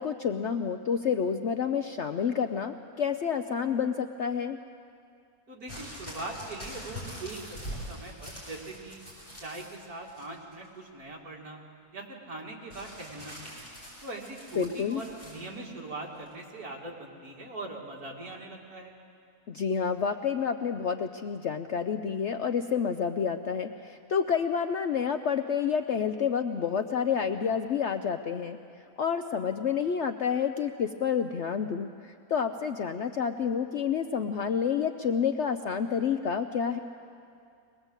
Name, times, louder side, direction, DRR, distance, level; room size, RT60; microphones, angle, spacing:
voice 1, 0.0-4.6 14.6-15.0 19.5-28.6 29.0-36.8, left 7 dB, 60° left, 7 dB, 0.8 m, -29 dB
voice 2, 5.5-7.6 7.9-9.0 9.4-11.6 11.9-13.6 14.0-18.9, right 2 dB, 70° right, -2 dB, 3.1 m, -41 dB
sound 1, 5.7-9.8 10.1-10.7 12.7-15.4 16.3-16.4, equal, 25° left, 8.0 m, -43 dB
22.0 x 20.0 x 8.1 m, 2.4 s
omnidirectional pair, 1.7 m